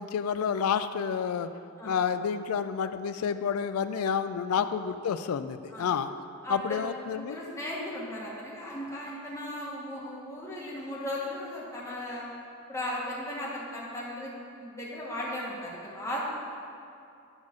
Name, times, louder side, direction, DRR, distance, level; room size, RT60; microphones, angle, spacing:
voice 1, 0.0-1.5 1.8-6.1 6.5-7.4, left 7 dB, 85° left, 11 dB, 0.3 m, -29 dB
voice 2, 6.4-6.9 7.1-12.2 12.7-14.3 14.6-16.2, left 1 dB, 15° left, -6 dB, 1.4 m, -36 dB
9.7 x 3.6 x 6.4 m, 2.6 s
head